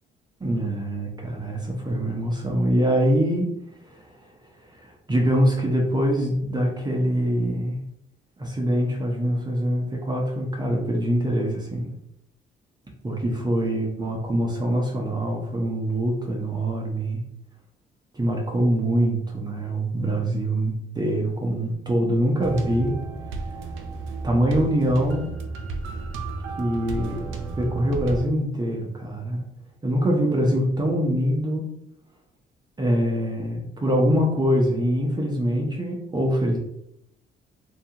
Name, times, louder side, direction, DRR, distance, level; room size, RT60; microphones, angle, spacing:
voice 1, 0.4-3.5 3.9-4.3 4.7-7.8 8.4-11.9 13.0-17.2 18.1-22.9 24.2-25.3 26.6-29.4 29.8-31.6 32.8-36.6, equal, 20° right, -1 dB, 0.6 m, -24 dB
sound 1, 22.4-28.2, right 3 dB, 80° right, 0.5 m, -33 dB
2.6 x 2.3 x 2.8 m, 0.78 s
cardioid pair, 90°, 20 cm